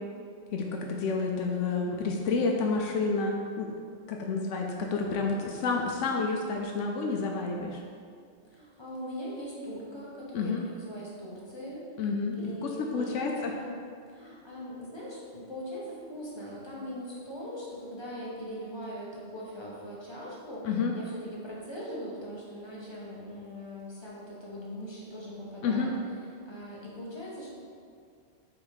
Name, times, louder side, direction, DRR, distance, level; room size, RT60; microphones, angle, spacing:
voice 1, 0.5-3.8 4.1-7.8 10.3-10.6 12.0-13.5 20.6-20.9 25.6-25.9, left 4 dB, 85° left, 1 dB, 0.9 m, -29 dB
voice 2, 8.5-11.8 12.3-13.8 14.1-25.9 26.2-27.5, equal, 25° left, -5 dB, 1.1 m, -41 dB
4.8 x 4.2 x 4.8 m, 2.2 s
omnidirectional pair, 1.2 m